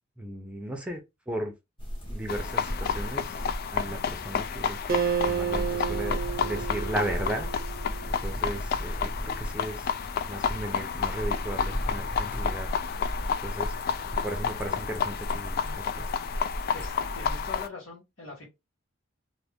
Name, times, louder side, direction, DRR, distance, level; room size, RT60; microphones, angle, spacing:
voice 1, 0.2-1.0 1.3-1.5 2.0-3.3 3.7-7.5 8.1-9.9 10.3-12.7 13.4-13.7 14.2-16.1, right 1 dB, 5° right, 0.6 m, -36 dB
sound 1, 1.8-17.6, equal, 25° left, 1.2 m, -36 dB
sound 2, 2.3-17.7, left 7 dB, 45° left, 0.3 m, -31 dB
Acoustic guitar, 4.9-8.4, right 7 dB, 45° right, 0.6 m, -31 dB
voice 2, 16.7-18.5, left 3 dB, 65° left, 1.4 m, -42 dB
2.6 x 2.5 x 3.5 m
head